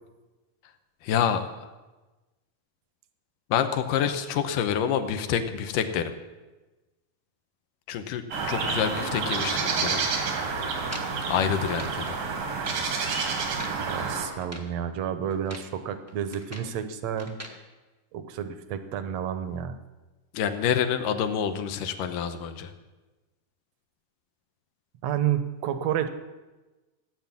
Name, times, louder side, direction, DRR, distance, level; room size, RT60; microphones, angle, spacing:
voice 1, 1.0-1.7 3.5-6.1 7.9-10.0 11.3-12.2 20.3-22.7, left 8 dB, 90° left, 8 dB, 2.5 m, -27 dB
sound 1, 8.3-14.3, right 5 dB, 85° right, 3.7 m, -29 dB
sound 2, 10.9-12.0 12.4-12.9 13.3-13.8 14.3-14.7 15.3-15.7 16.1-16.8 17.2-17.6, equal, 15° right, 0.5 m, -43 dB
voice 2, 13.8-17.4 18.1-19.8 25.0-26.1, right 9 dB, 65° right, 9 dB, 1.8 m, -30 dB
16.5 x 9.3 x 7.2 m, 1.2 s
omnidirectional pair, 3.8 m